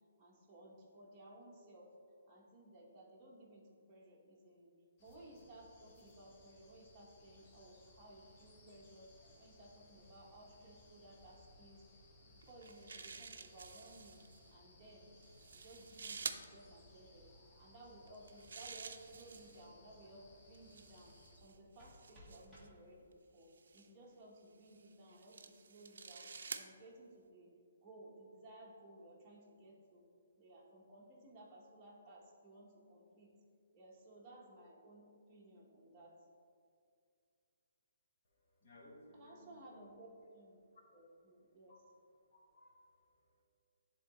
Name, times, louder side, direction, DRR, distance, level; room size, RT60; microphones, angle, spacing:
voice 1, 0.2-1.9 2.3-4.7 5.0-9.1 9.4-11.8 12.2-14.2 14.5-15.1 15.5-17.3 17.5-21.1 21.4-23.5 23.7-26.3 26.5-30.0 30.4-33.3 33.7-36.1 39.1-40.6 40.9-41.8, right 1 dB, 15° right, -5 dB, 1.1 m, -58 dB
sound 1, 5.0-21.4, left 1 dB, 25° left, 1.1 m, -64 dB
sound 2, 12.4-14.4 15.2-16.4 18.1-19.7 20.5-22.7 23.5-23.9 24.7-26.7, right 5 dB, 75° right, 0.5 m, -49 dB
sound 3, 21.4-23.4, left 1 dB, ahead, 1.2 m, -63 dB
voice 2, 38.2-39.9 40.6-40.8 41.7-41.8 42.3-43.4, left 1 dB, 45° left, -2 dB, 1.5 m, -62 dB
10.0 x 3.8 x 3.1 m, 2.3 s
hypercardioid pair, 165°, 0 cm